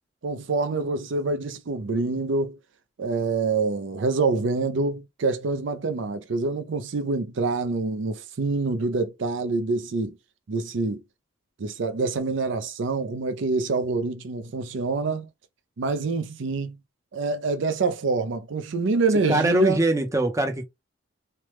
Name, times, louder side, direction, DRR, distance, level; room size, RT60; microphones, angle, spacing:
voice 1, 0.2-2.6 3.0-10.2 10.5-11.0 11.6-15.3 15.8-16.8 17.1-19.8, right 3 dB, 65° right, 0.5 m, -26 dB
voice 2, 19.3-20.6, right 2 dB, 15° right, 0.6 m, -22 dB
3.2 x 2.1 x 3.0 m
head